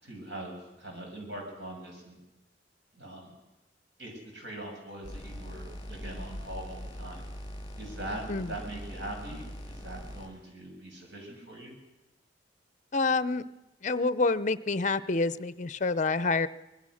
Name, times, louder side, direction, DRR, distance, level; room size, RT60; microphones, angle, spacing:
voice 1, 0.0-2.2 2.9-3.3 4.0-7.2 7.8-11.7, right 1 dB, 90° right, 1 dB, 7.4 m, -42 dB
sound 1, 5.0-10.3, equal, 25° left, 5.5 m, -42 dB
voice 2, 12.9-13.4 13.8-16.5, left 3 dB, 45° left, 16 dB, 0.7 m, -27 dB
24.5 x 20.5 x 6.5 m, 1.0 s
head